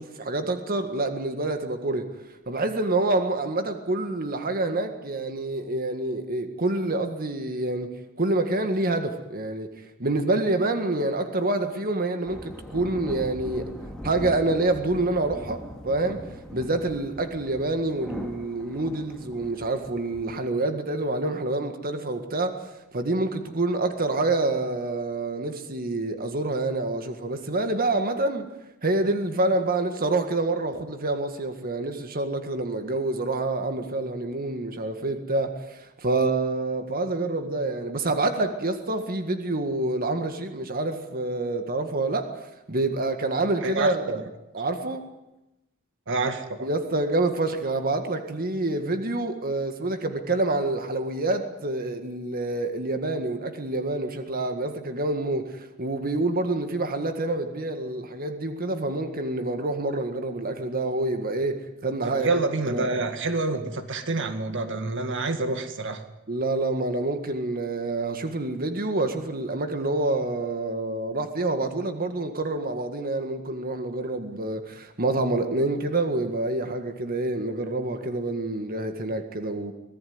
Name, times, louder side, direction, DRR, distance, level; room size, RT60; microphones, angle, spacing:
voice 1, 0.0-2.1 2.5-9.7 10.0-13.7 14.0-16.2 16.5-22.6 22.9-28.5 28.8-42.3 42.7-44.2 44.5-45.0 46.6-62.3 62.7-62.9 66.3-79.7, right 2 dB, 45° right, 7 dB, 1.8 m, -27 dB
sound 1, 12.3-20.4, equal, 5° left, 2.7 m, -40 dB
voice 2, 43.6-43.9 46.1-46.7 62.0-66.0, right 3 dB, 60° right, 8 dB, 1.9 m, -27 dB
25.5 x 18.5 x 9.6 m, 0.95 s
head